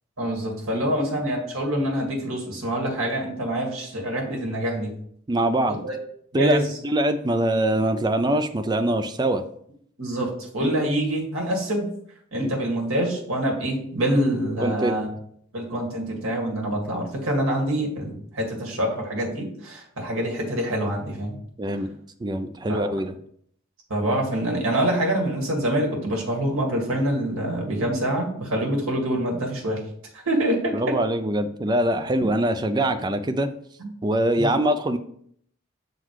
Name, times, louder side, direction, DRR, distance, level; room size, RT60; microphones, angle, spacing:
voice 1, 0.2-4.9 5.7-5.9 6.3-6.7 10.0-11.9 12.3-15.1 15.5-21.4 22.7-23.0 23.9-29.8 30.3-31.0 33.8-33.9 34.4-34.5, right 1 dB, 75° right, 0 dB, 1.9 m, -26 dB
voice 2, 5.3-5.8 6.3-6.6 6.8-9.4 10.6-10.8 14.6-15.0 21.6-21.9 22.2-23.1 30.7-33.5 34.0-35.0, right 1 dB, 20° right, 9 dB, 0.4 m, -23 dB
6.5 x 4.0 x 4.7 m, 0.65 s
head